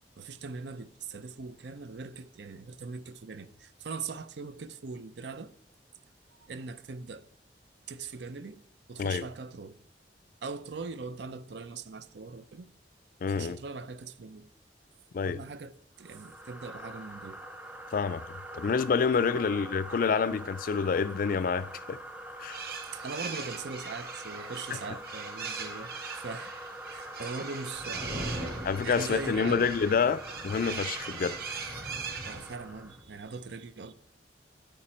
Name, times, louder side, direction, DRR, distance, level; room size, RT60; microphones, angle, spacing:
voice 1, 0.2-5.5 6.3-7.3 7.9-8.6 8.9-9.8 10.4-12.7 13.3-14.5 15.2-15.7 16.0-17.4 19.3-19.4 22.9-26.5 26.9-29.7 32.2-33.9, right 4 dB, 75° right, 0.6 m, -41 dB
voice 2, 13.2-13.6 15.1-15.4 17.9-18.2 18.5-22.0 22.4-22.6 28.6-31.4, left 5 dB, 50° left, 0.4 m, -28 dB
sound 1, 16.0-33.0, right 1 dB, 10° right, 0.7 m, -44 dB
sound 2, 22.4-32.6, right 6 dB, 60° right, 1.2 m, -41 dB
sound 3, 27.7-33.2, equal, 35° right, 3.7 m, -42 dB
9.5 x 9.1 x 4.3 m
head